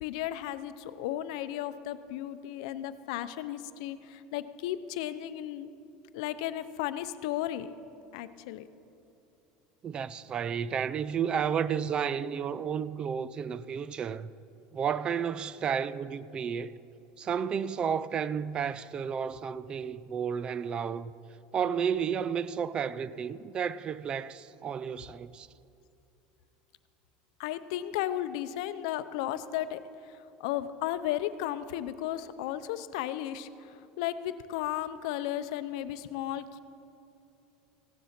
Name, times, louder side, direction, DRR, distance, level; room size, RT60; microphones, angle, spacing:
voice 1, 0.0-5.7 6.1-7.7 8.1-8.7 27.4-36.6, left 12 dB, 80° left, 0.6 m, -34 dB
voice 2, 9.8-14.3 14.7-16.8 17.2-21.1 21.5-25.5, right 7 dB, 30° right, 0.3 m, -32 dB
15.5 x 9.9 x 5.9 m
cardioid pair, 145°, 3 cm